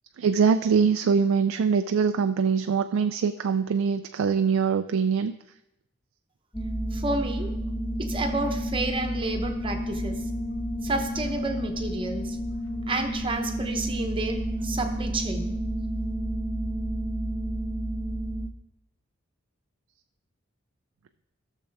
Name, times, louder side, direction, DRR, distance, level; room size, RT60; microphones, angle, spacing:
voice 1, 0.2-5.3, right 6 dB, 80° right, 8 dB, 0.4 m, -23 dB
sound 1, 6.5-18.5, equal, 15° left, 0.7 m, -30 dB
voice 2, 6.9-7.5 8.0-10.3 10.8-12.4 12.9-15.6, right 2 dB, 25° right, 5 dB, 0.9 m, -31 dB
15.5 x 6.5 x 3.5 m, 0.93 s
head